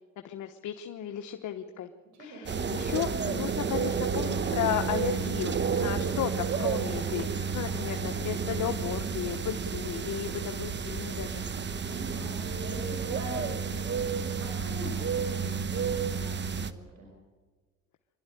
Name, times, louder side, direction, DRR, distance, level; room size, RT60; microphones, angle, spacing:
voice 1, 0.2-1.9 2.2-11.4, left 11 dB, 75° left, 6 dB, 1.2 m, -34 dB
voice 2, 2.1-2.6 11.8-17.1, right 1 dB, 70° right, 0 dB, 5.8 m, -43 dB
sound 1, 2.5-16.7, right 6 dB, 35° right, 1.1 m, -31 dB
26.0 x 12.0 x 10.0 m, 1.3 s
cardioid pair, 90°, 30 cm